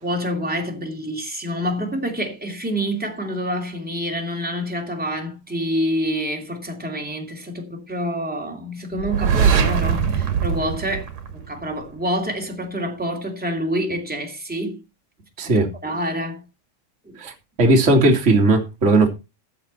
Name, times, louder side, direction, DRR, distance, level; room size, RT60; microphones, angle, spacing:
voice 1, 0.0-14.8 15.4-16.4 17.0-17.2, equal, 5° right, 2.2 m, -27 dB
sound 1, 9.0-11.8, right 7 dB, 60° right, 3.0 m, -21 dB
voice 2, 17.6-19.1, right 2 dB, 25° right, 2.5 m, -16 dB
15.0 x 7.5 x 4.3 m
omnidirectional pair, 3.6 m